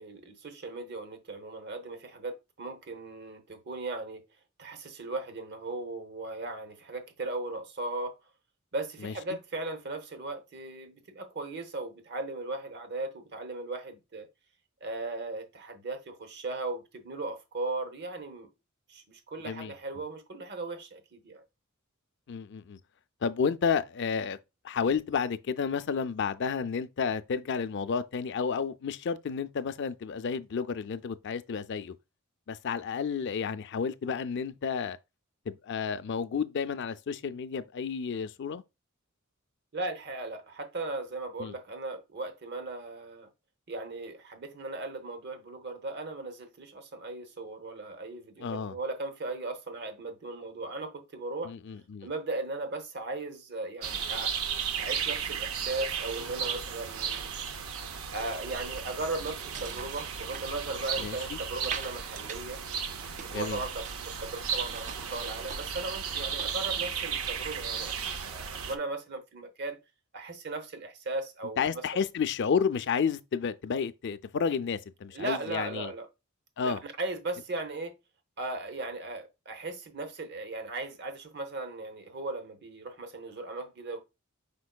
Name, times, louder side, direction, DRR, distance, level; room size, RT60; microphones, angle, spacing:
voice 1, 0.0-4.2 4.6-8.2 8.7-14.3 14.8-18.5 18.9-21.4 39.7-43.3 43.7-51.5 52.0-54.4 54.8-57.3 58.1-62.6 63.2-69.8 70.1-72.0 75.1-76.1 76.6-77.9 78.4-84.0, right 2 dB, 55° right, 0.9 m, -37 dB
voice 2, 22.3-22.8 23.2-24.4 24.6-31.9 32.5-35.0 35.5-38.6 41.4-41.5 48.4-48.8 51.4-52.1 61.0-61.4 63.3-63.6 71.6-75.9 76.6-76.8, left 6 dB, 55° left, 0.4 m, -31 dB
sound 1, 53.8-68.8, right 7 dB, 85° right, 0.6 m, -35 dB
sound 2, 59.3-61.2 61.6-62.6 62.8-64.2 64.5-66.8, right 6 dB, 35° right, 0.4 m, -44 dB
5.2 x 4.4 x 2.3 m
head